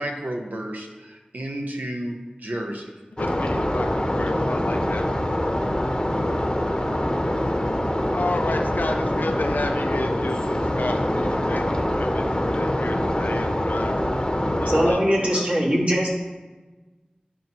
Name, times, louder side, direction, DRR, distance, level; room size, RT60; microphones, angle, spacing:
voice 1, 0.0-2.9 4.2-4.4, right 1 dB, 70° right, 2 dB, 0.9 m, -32 dB
voice 2, 3.2-5.3 8.1-14.1 14.6-15.4, left 2 dB, 90° left, 4 dB, 0.5 m, -32 dB
sound 1, 3.2-14.9, left 1 dB, 30° left, 0.8 m, -24 dB
voice 3, 14.7-16.1, equal, 45° right, -5 dB, 2.0 m, -21 dB
11.0 x 4.6 x 3.0 m, 1.2 s
wide cardioid pair, 40°, 3 cm